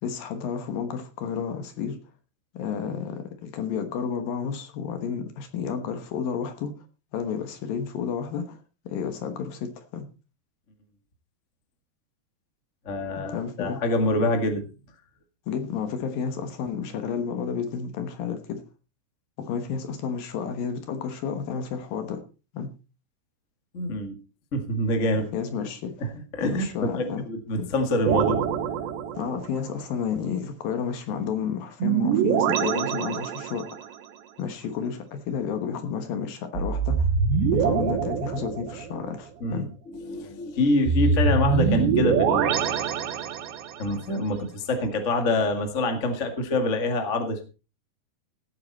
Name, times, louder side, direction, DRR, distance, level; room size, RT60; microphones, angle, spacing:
voice 1, 0.0-2.0 2.5-6.7 7.1-8.6 8.9-10.1 13.3-13.8 15.5-18.6 19.4-22.2 22.5-22.7 25.3-25.9 26.4-27.2 27.6-27.7 29.2-33.9 34.4-37.1 37.5-39.7, left 6 dB, 65° left, 2.7 m, -31 dB
voice 2, 12.8-14.6 23.7-24.2 24.5-25.3 26.0-28.4 39.4-42.7 43.8-47.4, left 1 dB, 45° left, 0.9 m, -26 dB
sound 1, 28.0-29.6 31.8-33.9 36.6-39.1 40.9-43.8, right 6 dB, 80° right, 3.4 m, -24 dB
16.5 x 8.6 x 4.2 m
omnidirectional pair, 5.1 m